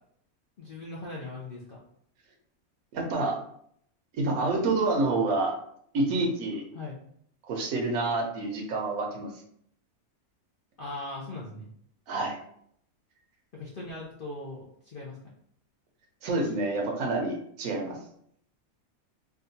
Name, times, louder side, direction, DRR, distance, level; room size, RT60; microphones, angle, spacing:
voice 1, 0.6-1.8 6.7-7.0 10.8-11.7 13.5-15.2, left 2 dB, 55° left, -4 dB, 0.6 m, -39 dB
voice 2, 2.9-3.4 4.2-5.6 5.9-6.6 7.5-9.3 12.1-12.4 16.2-18.0, right 2 dB, 75° right, 2 dB, 1.1 m, -28 dB
3.6 x 2.2 x 2.7 m, 0.67 s
omnidirectional pair, 1.5 m